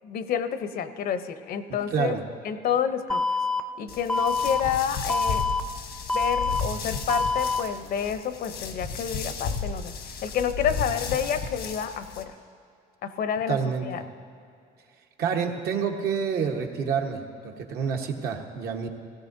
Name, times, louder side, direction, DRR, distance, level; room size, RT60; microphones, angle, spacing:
voice 1, 0.0-2.2 2.4-3.2 3.8-5.4 6.1-9.9 10.2-12.3 13.0-14.0, left 8 dB, 60° left, 10 dB, 0.7 m, -29 dB
voice 2, 1.7-2.2 13.5-14.0 15.2-18.9, right 6 dB, 70° right, 2 dB, 1.2 m, -28 dB
Alarm, 3.1-3.6 4.1-4.6 5.1-5.6 6.1-6.6 7.1-7.6, left 3 dB, 5° left, 0.5 m, -25 dB
sound 1, 3.9-12.2, left 5 dB, 80° left, 1.2 m, -34 dB
17.0 x 15.5 x 2.7 m, 2.4 s
cardioid pair, 110°, 17 cm